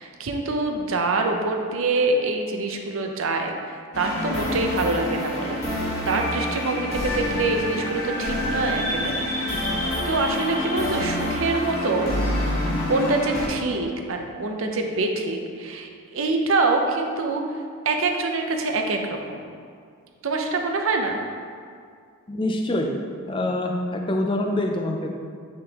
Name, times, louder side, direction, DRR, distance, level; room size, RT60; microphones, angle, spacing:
voice 1, 0.0-9.3 9.7-12.1 12.9-17.4 17.9-19.4 20.2-21.2, right 3 dB, 70° right, 3 dB, 0.6 m, -25 dB
sound 1, 3.9-13.5, left 1 dB, 80° left, 1.4 m, -27 dB
voice 2, 22.3-23.0 23.3-25.1, left 1 dB, 25° left, 2 dB, 0.4 m, -25 dB
9.4 x 3.7 x 2.9 m, 2.2 s
head